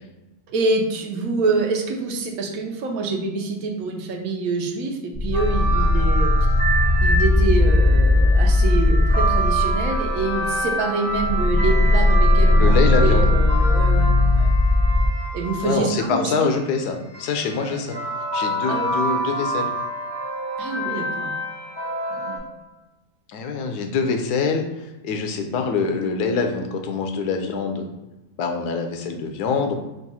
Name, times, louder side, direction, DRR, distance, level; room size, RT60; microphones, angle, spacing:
voice 1, 0.5-6.3 7.0-14.5 15.3-16.5 17.6-17.8 18.6-18.9 20.6-21.3 22.1-22.4, right 3 dB, 70° right, 2 dB, 1.1 m, -26 dB
sound 1, 5.1-10.7 11.1-15.1, left 2 dB, 25° left, 1.4 m, -18 dB
sound 2, 5.3-16.2 17.1-22.4, right 1 dB, 10° right, 1.3 m, -27 dB
voice 2, 12.6-13.3 15.6-18.0 18.3-19.7 23.3-27.8 28.4-29.8, left 5 dB, 80° left, 5 dB, 1.1 m, -24 dB
3.8 x 2.4 x 4.1 m, 1.0 s
omnidirectional pair, 1.6 m